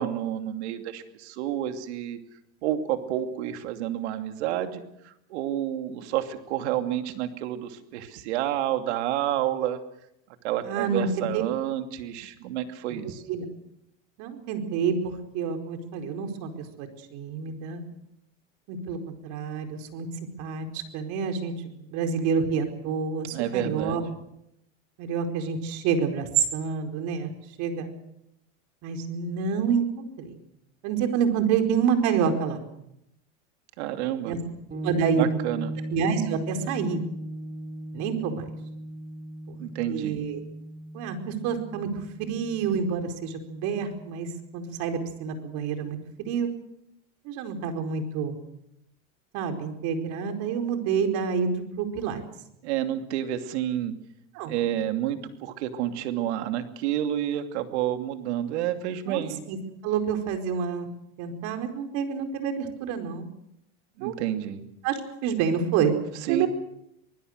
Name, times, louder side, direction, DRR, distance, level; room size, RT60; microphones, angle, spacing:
voice 1, 0.0-2.2 2.6-9.8 10.4-13.2 23.3-24.0 33.8-34.4 35.2-35.7 39.6-40.2 52.6-53.9 54.4-59.4 64.0-64.6 66.3-66.5, right 11 dB, 80° right, 7 dB, 2.7 m, -29 dB
voice 2, 10.6-11.4 13.3-13.4 14.2-17.8 18.7-20.1 20.4-24.0 25.0-27.3 27.6-27.9 28.8-30.4 30.8-32.6 34.2-34.4 34.8-35.3 35.9-37.0 37.9-38.4 39.5-39.6 39.9-40.4 40.9-41.9 42.2-44.3 44.5-46.5 47.2-48.4 49.3-52.2 54.3-54.5 59.1-59.6 59.8-60.9 61.2-63.3 64.0-64.1 64.8-65.9 66.3-66.5, right 6 dB, 60° right, 6 dB, 4.7 m, -28 dB
sound 1, 34.7-44.4, right 1 dB, 25° right, 4.6 m, -37 dB
24.5 x 20.5 x 6.7 m, 0.80 s
supercardioid pair, 130°, 33 cm